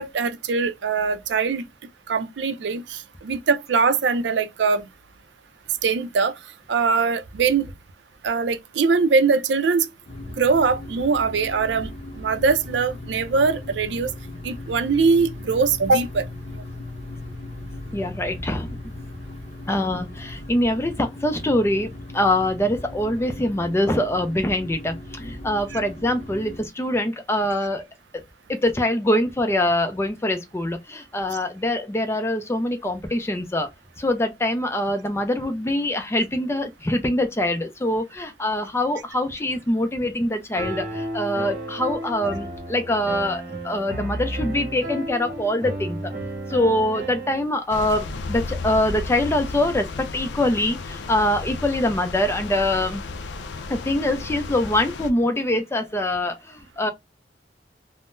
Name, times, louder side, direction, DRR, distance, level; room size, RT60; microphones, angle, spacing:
voice 1, 0.0-1.6 2.1-4.8 5.8-6.3 6.7-7.7 8.2-9.9 10.4-11.9 12.2-14.1 14.4-16.3 25.7-25.8, right 4 dB, 90° right, 0.4 m, -22 dB
sound 1, 10.1-26.6, left 2 dB, 40° left, 0.7 m, -38 dB
voice 2, 17.9-18.7 19.7-27.9 28.1-28.2 28.5-33.7 34.0-46.1 46.5-53.0 53.7-56.9, left 1 dB, 15° left, 0.4 m, -24 dB
Piano, 40.6-47.4, right 1 dB, 45° right, 0.9 m, -32 dB
sound 2, 47.7-55.1, left 3 dB, 85° left, 0.4 m, -33 dB
3.6 x 2.0 x 2.5 m
head